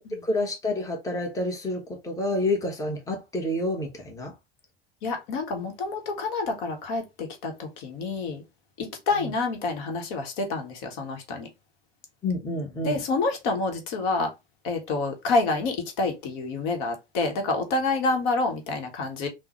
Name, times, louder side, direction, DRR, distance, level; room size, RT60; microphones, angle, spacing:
voice 1, 0.2-4.3 12.2-13.0, left 1 dB, 10° left, 0.9 m, -28 dB
voice 2, 5.0-8.4 8.8-11.5 12.8-14.3 14.6-19.3, left 3 dB, 50° left, 1.0 m, -28 dB
3.7 x 2.1 x 2.9 m
figure-of-eight pair, 90°, 29 cm